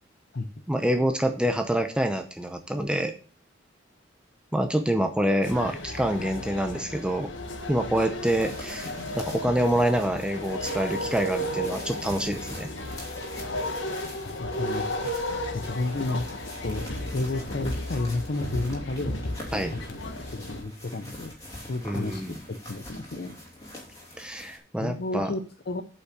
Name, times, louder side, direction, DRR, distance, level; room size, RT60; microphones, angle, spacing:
voice 1, 0.7-3.1 4.5-7.3 7.7-8.9 9.2-12.7 19.5-19.7 21.8-22.3 24.2-25.3, right 1 dB, 5° right, 6 dB, 0.6 m, -26 dB
sound 1, 5.4-20.6, left 1 dB, 90° left, 1.5 m, -34 dB
sound 2, 8.2-24.6, left 1 dB, 20° left, 2.8 m, -44 dB
voice 2, 14.2-15.0 15.5-16.3 16.6-16.9 17.1-19.1 19.5-20.0 20.3-21.3 21.6-23.4 24.8-25.8, left 2 dB, 55° left, 7 dB, 0.7 m, -32 dB
8.4 x 5.5 x 6.6 m, 0.40 s
head